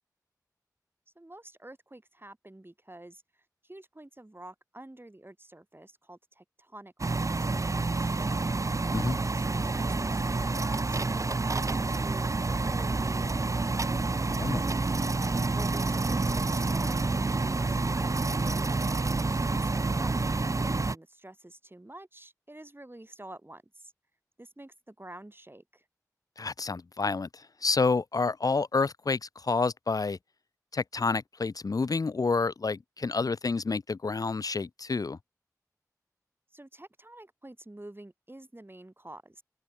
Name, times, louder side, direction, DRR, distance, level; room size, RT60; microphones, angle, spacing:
voice 1, 1.2-3.2 3.6-8.6 9.3-11.0 11.4-14.0 15.5-18.7 19.2-20.1 20.8-23.9 24.4-25.8 36.5-39.4, right 1 dB, 35° right, 4.5 m, -48 dB
sound 1, 7.0-20.9, right 3 dB, 55° right, 0.5 m, -28 dB
voice 2, 14.3-14.6 26.4-30.2 30.7-35.2, left 4 dB, 70° left, 0.4 m, -29 dB
open air
wide cardioid pair, 45°, 7 cm